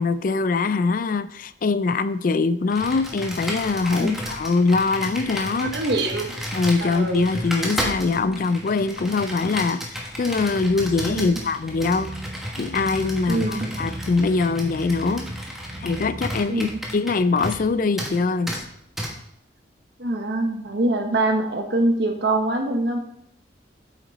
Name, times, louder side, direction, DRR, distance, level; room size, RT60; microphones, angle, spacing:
voice 1, 0.0-5.8 6.5-12.1 12.6-15.3 15.8-18.5, left 4 dB, 45° left, 14 dB, 0.4 m, -23 dB
Computer keyboard, 2.7-17.7 18.0-18.2 18.5-18.6 19.0-19.1, equal, ahead, 1.3 m, -33 dB
voice 2, 5.6-6.3 6.8-7.2 11.1-11.4 13.3-13.7 16.5-16.8 20.0-23.0, right 2 dB, 60° right, 3 dB, 1.2 m, -24 dB
sound 1, 10.4-16.8, right 1 dB, 45° right, 0.7 m, -38 dB
8.3 x 6.0 x 4.1 m, 0.73 s
head